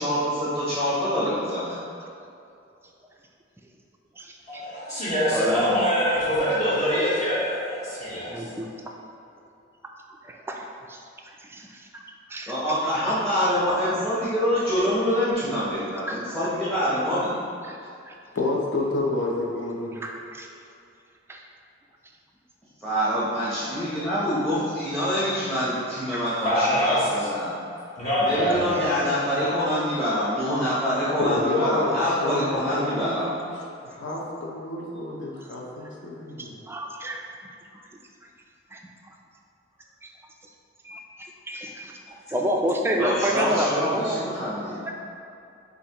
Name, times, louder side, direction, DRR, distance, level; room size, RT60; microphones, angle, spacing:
voice 1, 0.0-1.8 12.5-17.4 22.8-27.5 28.2-33.3 43.0-44.8, equal, 5° left, -10 dB, 0.8 m, -25 dB
voice 2, 4.5-8.3 26.4-27.3 28.0-28.8, equal, 40° left, -10 dB, 1.1 m, -24 dB
voice 3, 5.3-5.8 8.3-8.7 10.2-11.0 11.5-11.7 12.3-12.5 16.1-16.4 17.6-17.8 18.1-18.2 20.0-20.5 21.3-21.4 36.7-37.2 38.7-38.8 40.8-41.0 41.5-41.9 42.3-43.7 43.9-44.2 44.8-44.9, right 1 dB, 15° right, 1 dB, 0.3 m, -28 dB
voice 4, 18.3-20.0 31.2-31.9 32.2-33.6 33.8-36.6, left 2 dB, 70° left, -3 dB, 0.7 m, -29 dB
6.7 x 2.5 x 2.9 m, 2.6 s
head